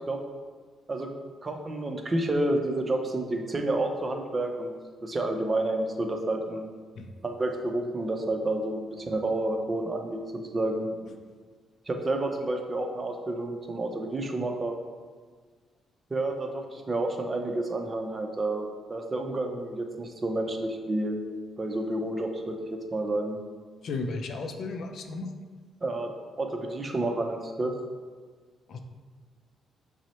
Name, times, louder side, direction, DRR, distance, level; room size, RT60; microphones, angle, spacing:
voice 1, 1.4-4.7 5.0-6.7 7.2-10.2 10.5-10.9 11.9-14.7 16.1-21.2 21.6-23.4 25.8-27.7, right 2 dB, 30° right, 4 dB, 0.6 m, -30 dB
voice 2, 23.8-25.3 28.7-28.8, left 3 dB, 60° left, 5 dB, 0.4 m, -34 dB
5.9 x 2.1 x 4.2 m, 1.5 s
cardioid pair, 90°, 0 cm